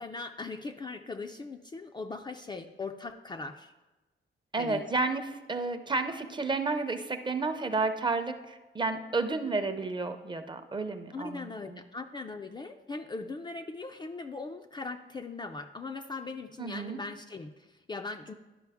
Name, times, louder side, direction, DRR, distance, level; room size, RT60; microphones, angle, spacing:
voice 1, 0.0-3.7 4.6-4.8 11.1-18.3, left 3 dB, 25° left, 4 dB, 0.3 m, -40 dB
voice 2, 4.5-11.8 16.6-17.0, right 3 dB, 25° right, 8 dB, 0.6 m, -31 dB
11.5 x 5.2 x 3.5 m, 1.1 s
cardioid pair, 120°, 20 cm